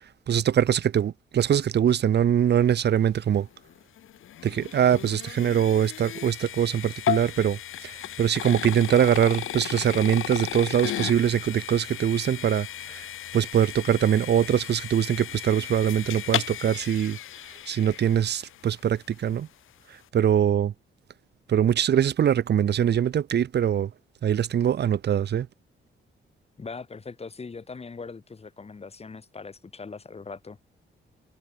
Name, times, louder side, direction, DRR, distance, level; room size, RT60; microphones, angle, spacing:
voice 1, 0.3-3.5 4.4-13.1 13.3-17.2 17.7-19.5 20.1-20.7 21.5-23.9 24.2-25.5, right 9 dB, 55° right, 1.0 m, -23 dB
sound 1, 3.6-18.8, left 12 dB, 80° left, 1.8 m, -35 dB
voice 2, 26.6-30.6, left 4 dB, 30° left, 4.3 m, -40 dB
cardioid pair, 115°, 20 cm